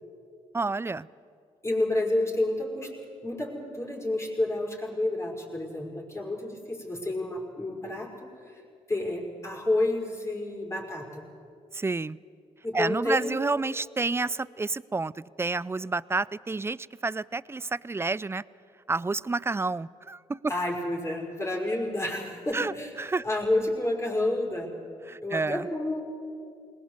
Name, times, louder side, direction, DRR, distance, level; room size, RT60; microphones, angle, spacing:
voice 1, 0.5-1.1 11.7-12.2 12.7-18.4 18.9-20.5 22.5-22.7 23.0-23.2 25.1-25.7, right 3 dB, 20° right, 21 dB, 0.5 m, -29 dB
voice 2, 1.6-2.9 3.2-8.6 8.9-11.2 12.6-13.5 20.5-22.9 23.2-24.7 25.2-26.0, left 1 dB, 20° left, -1 dB, 5.3 m, -30 dB
20.5 x 18.5 x 8.1 m, 2.4 s
supercardioid pair, 55°, 14 cm